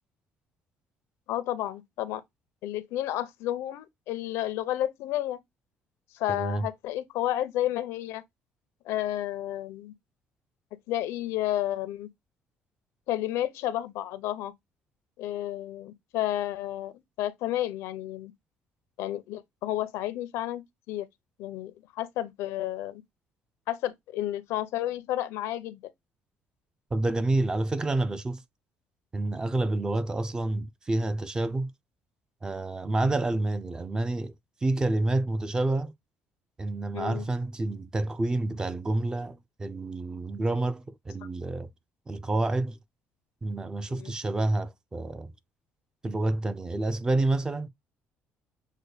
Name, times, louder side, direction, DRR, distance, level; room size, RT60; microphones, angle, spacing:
voice 1, 1.3-2.2 2.6-5.4 6.1-8.2 8.9-9.9 10.9-12.1 13.1-14.5 15.2-18.3 19.0-20.6 20.9-21.1 21.4-23.0 23.7-25.8 36.9-37.2 43.9-44.1, left 13 dB, 90° left, 0.6 m, -31 dB
voice 2, 6.3-6.7 26.9-28.4 29.1-31.7 32.4-34.3 34.6-35.9 36.6-41.7 42.1-42.8 43.4-45.3 46.0-47.7, right 2 dB, 15° right, 0.4 m, -28 dB
6.4 x 2.2 x 3.2 m
cardioid pair, 145°, 5 cm